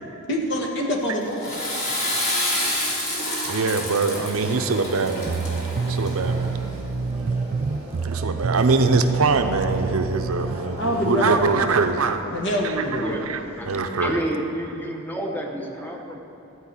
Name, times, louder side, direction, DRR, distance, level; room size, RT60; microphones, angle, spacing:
voice 1, 0.3-1.6 10.8-11.8 12.3-13.2, equal, 55° left, 0 dB, 1.4 m, -25 dB
Water / Toilet flush, 1.2-6.4, left 1 dB, 35° left, 2.1 m, -28 dB
voice 2, 3.5-6.5 8.0-12.2 13.0-14.2, right 4 dB, 80° right, 7 dB, 0.7 m, -23 dB
sound 1, 4.1-13.9, right 1 dB, 10° right, 1.4 m, -39 dB
sound 2, 5.2-10.6, right 4 dB, 45° right, 0.3 m, -27 dB
voice 3, 12.9-13.2 13.6-16.2, right 1 dB, 10° left, 0 dB, 0.9 m, -30 dB
13.0 x 4.8 x 8.3 m, 2.8 s
head